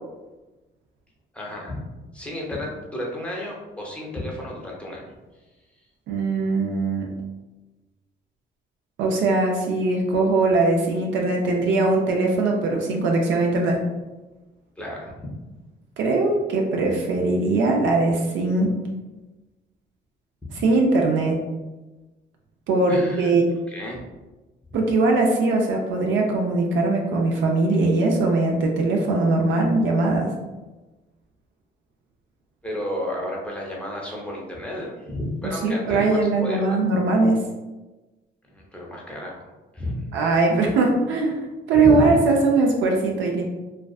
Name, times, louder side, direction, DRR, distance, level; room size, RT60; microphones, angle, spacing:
voice 1, 1.3-1.8 2.1-5.1 14.8-15.1 22.9-23.3 23.7-24.0 32.6-36.8 38.5-39.5 39.7-40.1 41.7-42.2, left 1 dB, 5° left, -3 dB, 0.6 m, -31 dB
voice 2, 6.1-7.1 9.0-13.8 16.0-18.7 20.6-21.4 22.7-23.4 24.7-30.3 35.6-37.4 40.1-41.4 41.7-43.4, right 3 dB, 75° right, 0 dB, 0.4 m, -21 dB
2.4 x 2.2 x 2.3 m, 1.1 s
cardioid pair, 90°, 20 cm